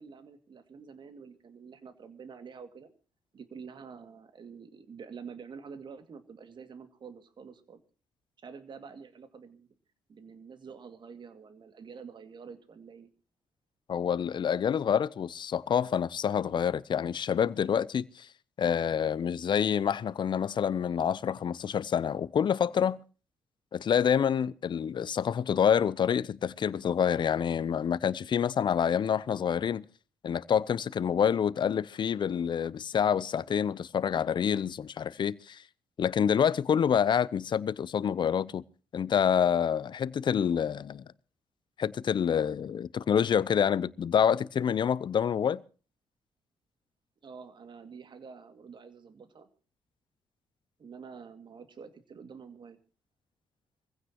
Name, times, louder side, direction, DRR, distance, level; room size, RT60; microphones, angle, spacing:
voice 1, 0.0-2.9 3.3-7.8 8.4-9.7 10.1-13.1 47.2-49.5 50.8-52.8, right 6 dB, 55° right, 2.3 m, -47 dB
voice 2, 13.9-18.3 18.6-23.0 23.7-29.8 30.2-35.6 36.0-38.6 38.9-41.0 41.8-45.6, left 8 dB, 50° left, 0.7 m, -27 dB
24.5 x 16.0 x 3.0 m
hypercardioid pair, 50°, 10 cm